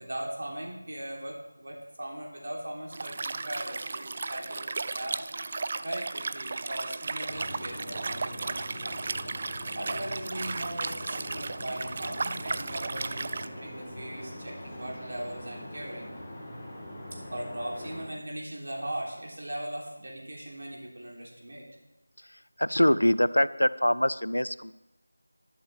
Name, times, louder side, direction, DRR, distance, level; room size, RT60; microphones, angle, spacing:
voice 1, 0.0-5.3 5.8-9.2 9.7-16.1 17.3-21.7, right 1 dB, 45° right, -2 dB, 3.2 m, -39 dB
Liquid, 2.9-13.5, right 3 dB, 30° right, 0.3 m, -35 dB
sound 1, 7.2-18.0, left 1 dB, 10° left, 1.7 m, -43 dB
voice 2, 22.2-24.7, equal, 80° left, 17 dB, 0.5 m, -24 dB
13.5 x 11.5 x 3.5 m, 0.95 s
figure-of-eight pair, 170°, 0 cm